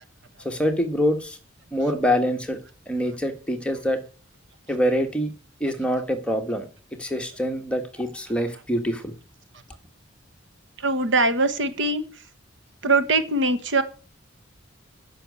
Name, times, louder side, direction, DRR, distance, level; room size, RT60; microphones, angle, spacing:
voice 1, 0.4-1.4 1.7-2.6 2.9-4.0 4.7-5.3 5.6-6.7 7.0-9.1, equal, 5° left, 4 dB, 1.4 m, -25 dB
voice 2, 10.8-12.0 12.8-13.8, right 2 dB, 65° right, 10 dB, 1.3 m, -22 dB
10.0 x 6.4 x 8.3 m, 0.37 s
head